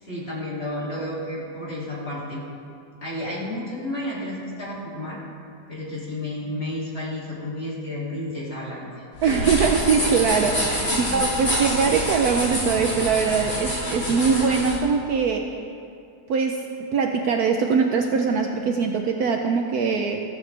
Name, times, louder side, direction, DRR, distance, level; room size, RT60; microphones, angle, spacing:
voice 1, 0.0-2.4 3.0-5.2 5.7-9.0 10.9-11.2, left 1 dB, 35° left, -6 dB, 2.9 m, -31 dB
sound 1, 9.1-14.8, equal, 50° left, 4.2 m, -27 dB
voice 2, 9.2-15.5 16.3-16.6 16.9-20.2, right 5 dB, 65° right, 3 dB, 1.1 m, -22 dB
14.5 x 14.5 x 3.3 m, 2.4 s
omnidirectional pair, 2.0 m